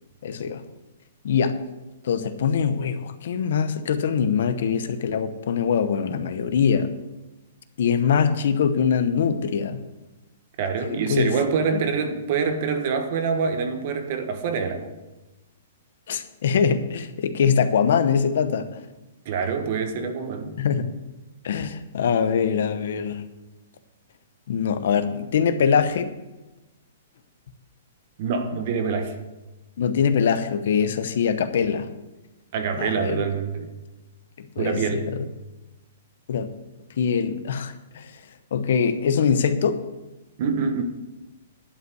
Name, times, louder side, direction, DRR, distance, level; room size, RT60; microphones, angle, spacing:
voice 1, 0.2-0.6 1.2-1.6 2.0-6.9 7.8-9.8 10.9-11.3 11.7-11.8 16.1-18.7 20.6-20.9 21.4-23.2 24.5-26.1 29.8-31.9 32.8-33.2 34.6-35.2 36.3-36.5 37.0-38.0 38.5-39.8, left 6 dB, 60° left, 11 dB, 0.9 m, -23 dB
voice 2, 10.6-14.9 19.2-20.5 28.2-29.1 32.5-33.7 34.6-35.1 40.4-40.8, right 5 dB, 40° right, 7 dB, 1.3 m, -25 dB
11.0 x 5.3 x 7.8 m, 1.1 s
hypercardioid pair, 170°, 0 cm